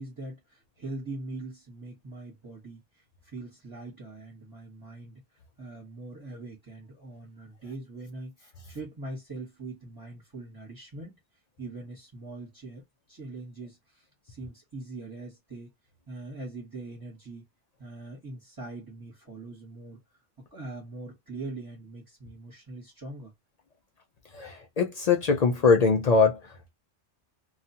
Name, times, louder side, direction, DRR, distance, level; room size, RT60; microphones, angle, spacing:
voice 1, 0.0-5.2 5.6-11.1 11.6-12.8 13.1-15.7 16.1-17.5 17.8-20.0 20.5-23.3, right 2 dB, 20° right, 1.0 m, -42 dB
voice 2, 24.3-26.7, left 4 dB, 60° left, 0.4 m, -23 dB
2.3 x 2.3 x 2.7 m
omnidirectional pair, 1.2 m